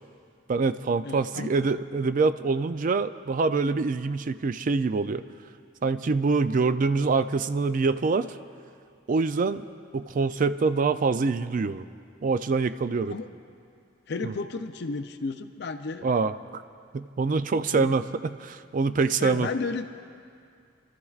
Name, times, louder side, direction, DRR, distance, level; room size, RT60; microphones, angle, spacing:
voice 1, 0.5-5.2 5.8-8.4 9.1-9.6 9.9-11.8 12.2-13.1 14.2-14.3 16.0-16.3 16.9-19.5, right 4 dB, 40° right, 12 dB, 0.4 m, -25 dB
voice 2, 1.0-1.5 13.1-13.3 14.1-16.1 17.7-17.9 19.2-20.0, left 4 dB, 60° left, 8 dB, 0.5 m, -33 dB
28.5 x 13.5 x 2.4 m, 2.3 s
head